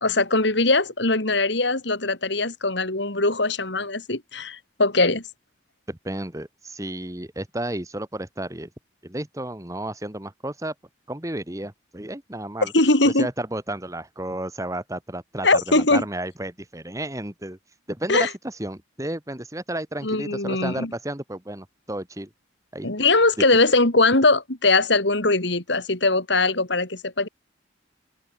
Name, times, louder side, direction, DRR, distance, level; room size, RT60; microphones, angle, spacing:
voice 1, 0.0-5.2 12.7-13.3 15.4-16.0 18.1-18.3 20.0-20.9 22.8-27.3, left 2 dB, 65° left, 3.1 m, -21 dB
voice 2, 5.9-8.7 9.0-10.7 11.1-12.7 13.0-17.6 17.9-22.3 22.7-22.9, right 1 dB, 15° right, 1.9 m, -32 dB
head